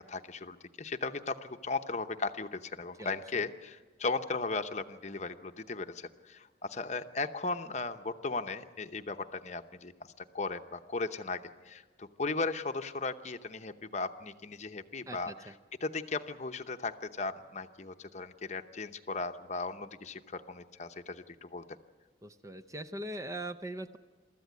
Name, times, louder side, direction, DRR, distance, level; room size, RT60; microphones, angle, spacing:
voice 1, 0.1-9.9 10.2-11.4 11.7-15.5 15.8-21.6, left 3 dB, 35° left, 8 dB, 0.8 m, -37 dB
voice 2, 3.0-3.4 15.1-15.5 22.2-24.0, right 1 dB, 15° right, 9 dB, 0.6 m, -41 dB
24.0 x 14.0 x 9.3 m, 1.4 s
head